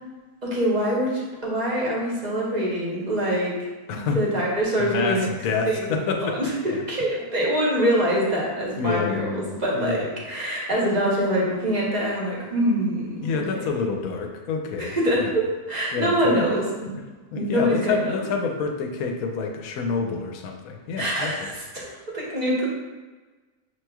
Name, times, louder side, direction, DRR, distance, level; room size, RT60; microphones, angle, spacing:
voice 1, 0.4-3.5 3.9-5.3 5.7-13.4 13.7-13.9 14.8-16.9 17.4-18.1 21.0-21.9 22.1-22.7, equal, 35° right, -4 dB, 0.9 m, -25 dB
voice 2, 3.9-4.2 4.8-6.4 6.6-6.8 8.8-9.5 9.7-10.0 13.2-15.3 15.9-16.4 17.3-21.5, left 4 dB, 70° left, 3 dB, 1.0 m, -28 dB
6.5 x 3.1 x 2.3 m, 1.3 s
omnidirectional pair, 1.6 m